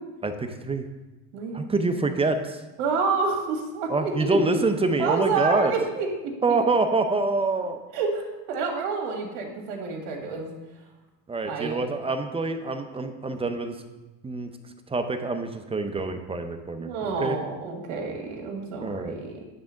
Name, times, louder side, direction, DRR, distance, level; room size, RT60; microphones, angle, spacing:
voice 1, 0.2-0.9 1.5-2.6 3.9-5.7 6.4-7.8 11.3-13.8 14.2-14.5 14.9-17.4 18.8-19.2, right 3 dB, 15° right, 7 dB, 0.6 m, -26 dB
voice 2, 2.8-4.6 5.0-6.6 7.9-10.5 11.4-11.8 16.8-19.4, right 4 dB, 75° right, 1 dB, 1.9 m, -29 dB
9.8 x 3.5 x 6.3 m, 1.1 s
supercardioid pair, 115°, 46 cm